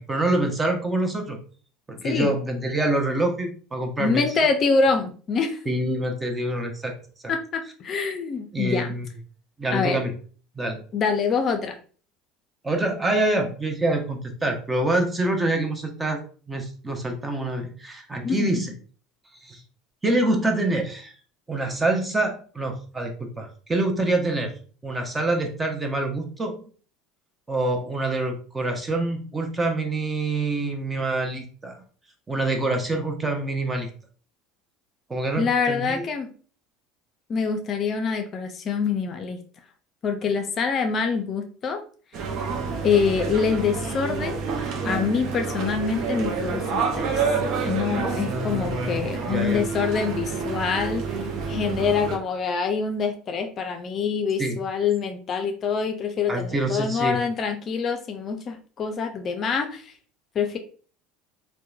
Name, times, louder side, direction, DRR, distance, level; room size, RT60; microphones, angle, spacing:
voice 1, 0.0-1.4 1.9-4.2 5.7-7.0 7.2-7.3 8.5-9.1 9.6-10.2 10.6-10.8 12.6-16.2 16.5-18.7 19.4-19.6 20.0-21.1 21.5-26.7 27.5-31.8 32.3-33.9 35.1-36.1 48.2-49.6 54.4-54.6 56.3-57.2, right 2 dB, 20° right, 3 dB, 0.6 m, -26 dB
voice 2, 4.0-5.6 7.3-8.9 9.7-10.0 10.9-11.8 18.2-18.6 35.4-36.3 37.3-39.4 40.0-41.8 42.8-44.4 44.8-47.1 47.7-51.2 51.5-59.9 60.3-60.6, left 5 dB, 45° left, 6 dB, 0.4 m, -25 dB
sound 1, 42.1-52.2, right 5 dB, 55° right, 0.5 m, -28 dB
2.9 x 2.1 x 2.3 m, 0.41 s
hypercardioid pair, 80°, 0 cm